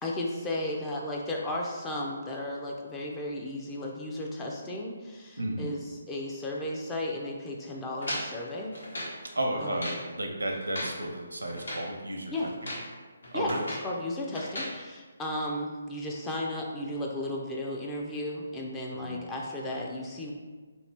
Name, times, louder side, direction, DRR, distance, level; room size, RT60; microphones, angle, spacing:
voice 1, 0.0-8.7 9.6-9.8 12.3-12.5 13.3-13.5 13.8-20.3, left 1 dB, 15° left, -2 dB, 0.4 m, -34 dB
voice 2, 5.4-5.7 9.3-12.5 13.3-13.6 19.0-19.2, right 1 dB, 90° right, 1 dB, 0.6 m, -33 dB
sound 1, 8.0-9.2 9.6-10.1 10.5-11.0 11.5-11.9 12.5-12.9 13.2-13.9 14.3-14.8, left 1 dB, 75° left, 1.2 m, -37 dB
2.7 x 2.4 x 3.3 m, 1.4 s
figure-of-eight pair, 150°, 0 cm